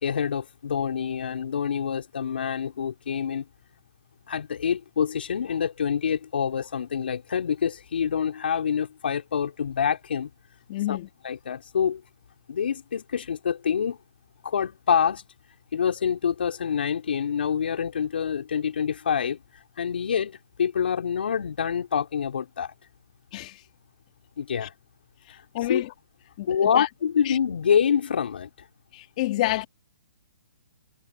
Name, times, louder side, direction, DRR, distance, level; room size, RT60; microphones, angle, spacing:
voice 1, 0.0-3.4 4.3-10.3 10.9-11.0 11.2-12.0 12.5-14.0 14.4-15.2 15.7-19.4 19.8-22.7 24.4-24.7 25.7-25.8 26.5-28.5, left 7 dB, 70° left, 4.1 m, -26 dB
voice 2, 10.7-11.1 23.3-23.5 25.5-25.9 26.4-26.9 27.2-27.3 28.9-29.7, left 17 dB, 40° left, 1.6 m, -28 dB
hypercardioid pair, 140°, 6 cm